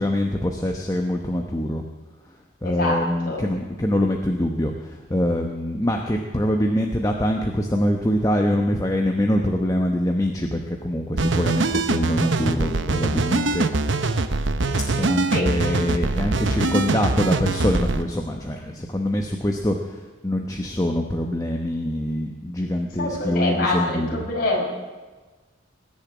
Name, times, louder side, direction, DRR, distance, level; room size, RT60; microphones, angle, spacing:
voice 1, 0.0-1.8 2.6-13.7 14.9-24.2, left 1 dB, 15° left, 3 dB, 0.9 m, -24 dB
voice 2, 2.6-3.4 15.3-15.5 23.0-24.6, left 2 dB, 45° left, -2 dB, 5.3 m, -25 dB
sound 1, 11.2-18.0, right 3 dB, 70° right, 0.9 m, -23 dB
20.0 x 7.0 x 9.5 m, 1.3 s
head